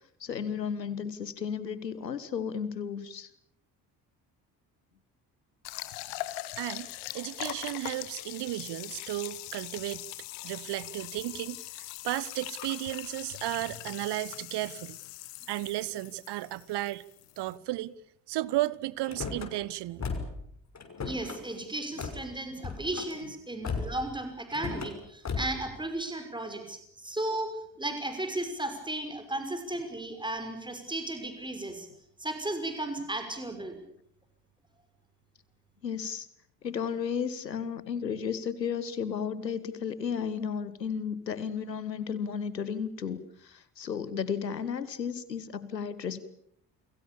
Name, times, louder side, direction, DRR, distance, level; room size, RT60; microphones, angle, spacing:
voice 1, 0.2-3.3 35.8-36.3 36.6-46.3, left 7 dB, 85° left, 1.4 m, -33 dB
sound 1, 5.6-17.6, left 18 dB, 65° left, 1.9 m, -41 dB
voice 2, 6.6-6.9 7.1-10.0 10.4-15.0 15.5-17.0 17.4-17.9 18.3-20.1, right 16 dB, 55° right, 1.2 m, -34 dB
Car / Slam, 19.0-19.5 20.0-20.4 20.7-21.4 22.0-22.2 22.6-23.1 23.6-24.1 24.5-24.9 25.2-25.6, left 4 dB, 35° left, 6.2 m, -35 dB
voice 3, 21.0-27.5 27.8-31.9 32.2-33.8, right 1 dB, 10° right, 5.9 m, -35 dB
30.0 x 22.5 x 7.2 m
figure-of-eight pair, 45°, 49 cm